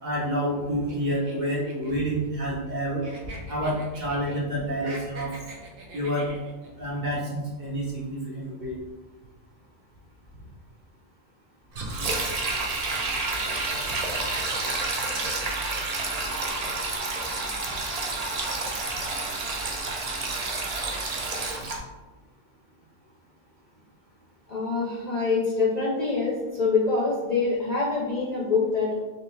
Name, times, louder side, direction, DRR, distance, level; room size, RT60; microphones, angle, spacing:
voice 1, 0.0-3.0 3.5-5.3 5.9-6.3 6.8-8.7, equal, 40° right, -6 dB, 1.2 m, -28 dB
sound 1, 0.9-2.8 3.0-4.4 4.7-6.7, right 2 dB, 90° right, 1.2 m, -44 dB
Sink (filling or washing), 11.7-21.8, right 3 dB, 55° right, 0.4 m, -29 dB
voice 2, 24.5-29.0, left 4 dB, 45° left, -6 dB, 0.6 m, -25 dB
3.5 x 3.2 x 3.3 m, 1.2 s
omnidirectional pair, 1.4 m